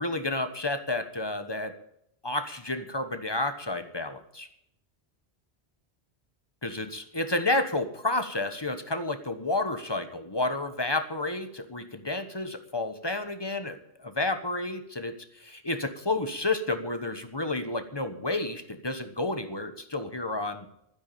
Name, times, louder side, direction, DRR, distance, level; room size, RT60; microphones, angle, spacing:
voice 1, 0.0-1.7 2.2-4.5 6.6-20.7, left 2 dB, 25° left, 9 dB, 1.2 m, -31 dB
12.5 x 9.7 x 8.6 m, 0.76 s
omnidirectional pair, 1.1 m